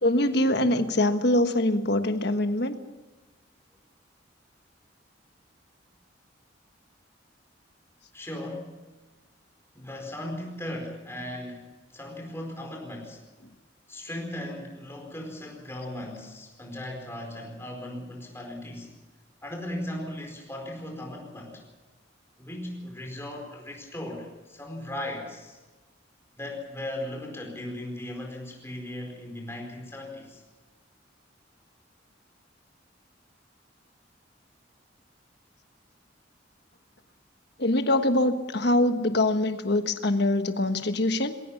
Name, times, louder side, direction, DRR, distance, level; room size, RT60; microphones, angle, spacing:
voice 1, 0.0-2.8 37.6-41.3, left 1 dB, 60° left, 8 dB, 1.4 m, -24 dB
voice 2, 8.1-8.8 9.7-11.6 11.9-13.2 13.9-18.9 19.4-21.6 22.4-25.6 26.4-30.4, left 1 dB, 15° left, 1 dB, 4.6 m, -37 dB
21.5 x 17.0 x 7.2 m, 1.2 s
head